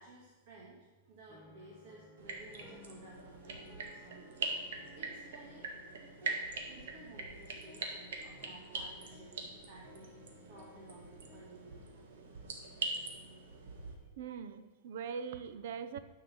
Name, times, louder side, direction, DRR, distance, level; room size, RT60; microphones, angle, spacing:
voice 1, 0.0-4.3 5.0-5.7 6.0-9.4 9.6-10.1 10.5-11.8, right 2 dB, 40° right, -4 dB, 1.7 m, -55 dB
sound 1, 1.3-11.9, left 3 dB, ahead, 1.1 m, -60 dB
sound 2, 2.2-13.9, right 3 dB, 85° right, 1.8 m, -43 dB
voice 2, 14.2-16.0, right 6 dB, 60° right, 11 dB, 0.7 m, -41 dB
9.6 x 5.6 x 7.0 m, 1.2 s
supercardioid pair, 175°, 0 cm